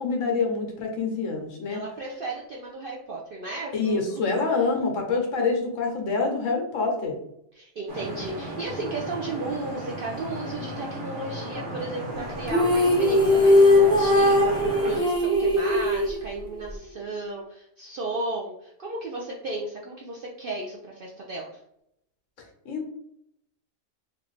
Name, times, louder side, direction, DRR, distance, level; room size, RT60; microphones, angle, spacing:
voice 1, 0.0-1.8 3.7-7.2 22.6-22.9, left 4 dB, 70° left, 1 dB, 1.1 m, -26 dB
voice 2, 1.7-4.2 7.5-21.5, right 2 dB, 65° right, -2 dB, 0.5 m, -34 dB
Vehicle horn car horn honking / Traffic noise roadway noise, 7.9-15.0, equal, 45° right, 1.0 m, -35 dB
sound 1, 12.5-16.7, left 1 dB, 5° left, 0.4 m, -19 dB
3.3 x 2.5 x 3.1 m, 0.76 s
omnidirectional pair, 1.4 m